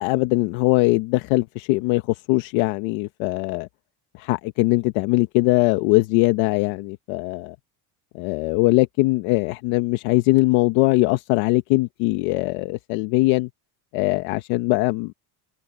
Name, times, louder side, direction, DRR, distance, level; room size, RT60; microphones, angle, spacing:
voice 1, 0.0-3.7 4.1-7.6 8.1-13.5 13.9-15.1, left 22 dB, 80° left, 1.1 m, -21 dB
open air
cardioid pair, 160°, 46 cm